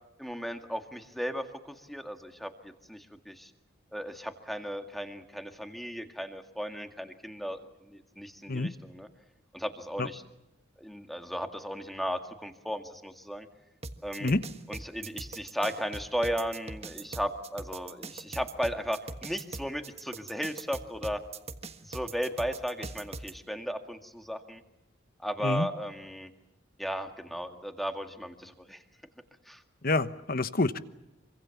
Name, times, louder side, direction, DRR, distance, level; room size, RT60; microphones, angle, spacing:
voice 1, 0.2-3.5 3.9-9.1 9.5-10.2 10.8-13.5 14.0-14.3 14.7-21.2 21.8-24.6 25.2-26.3 26.8-28.8 29.5-29.6, equal, ahead, 6 dB, 1.9 m, -35 dB
sound 1, 13.8-23.3, right 3 dB, 35° right, 1.5 m, -41 dB
voice 2, 29.8-30.8, left 2 dB, 50° left, 12 dB, 1.1 m, -27 dB
26.0 x 24.5 x 7.2 m, 0.94 s
head